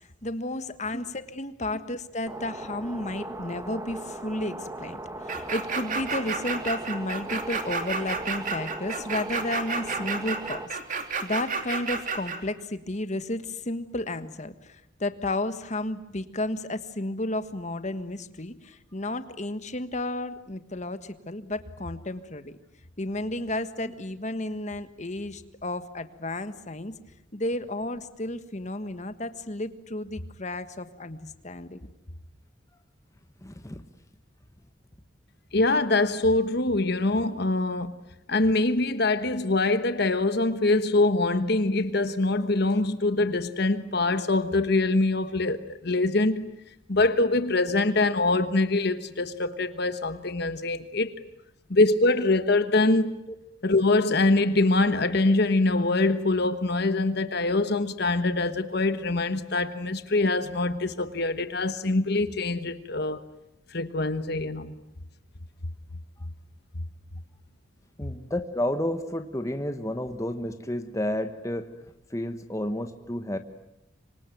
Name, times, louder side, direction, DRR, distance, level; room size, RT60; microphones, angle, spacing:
voice 1, 0.2-10.6 10.9-22.5 23.0-26.9 27.3-31.8, left 1 dB, 40° left, 1.5 m, -32 dB
sound 1, 2.3-10.7, right 1 dB, 15° right, 1.4 m, -38 dB
sound 2, 5.3-12.4, right 5 dB, 45° right, 2.9 m, -31 dB
voice 2, 33.4-33.8 53.3-53.4 68.0-71.7 72.1-73.4, left 1 dB, 15° left, 1.2 m, -31 dB
voice 3, 35.5-37.9 38.3-46.4 46.9-51.1 51.7-53.1 53.6-63.2 63.7-64.8, left 2 dB, 55° left, 1.3 m, -24 dB
26.0 x 25.0 x 9.2 m
head